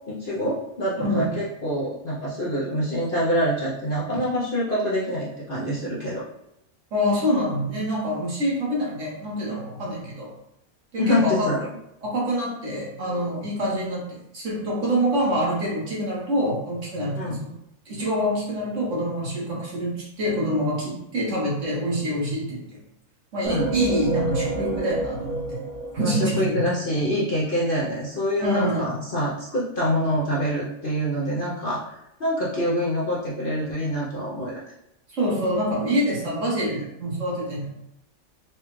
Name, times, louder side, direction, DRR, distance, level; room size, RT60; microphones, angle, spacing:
voice 1, 0.1-6.2 11.0-11.7 17.2-17.4 23.4-23.8 26.0-34.7, equal, 50° left, -7 dB, 0.7 m, -26 dB
voice 2, 1.0-1.4 6.9-10.3 10.9-11.5 12.0-17.5 17.8-22.8 23.3-25.6 25.9-26.6 28.4-29.0 35.1-37.7, equal, 60° right, -4 dB, 1.5 m, -26 dB
sound 1, 23.4-27.0, right 1 dB, 85° right, 1.3 m, -29 dB
4.2 x 2.3 x 3.0 m, 0.82 s
omnidirectional pair, 1.5 m